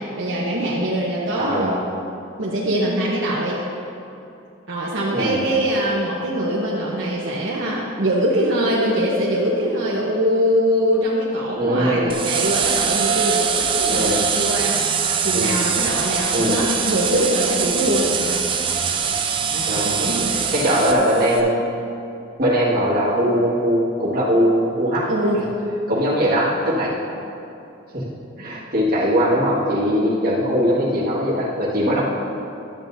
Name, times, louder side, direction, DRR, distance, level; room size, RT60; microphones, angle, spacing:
voice 1, 0.0-1.8 2.4-3.6 4.7-14.8 15.2-18.4 19.5-20.3 25.1-25.4, equal, 75° right, -6 dB, 1.0 m, -22 dB
voice 2, 1.4-1.8 5.1-5.4 11.6-12.2 13.9-14.2 15.3-15.6 16.3-16.6 19.7-21.7 22.4-25.1 25.9-26.9 27.9-28.1 28.4-32.0, equal, 45° right, -7 dB, 1.9 m, -20 dB
sound 1, 12.1-21.4, right 6 dB, 25° right, 0.4 m, -23 dB
11.5 x 7.6 x 2.7 m, 2.8 s
head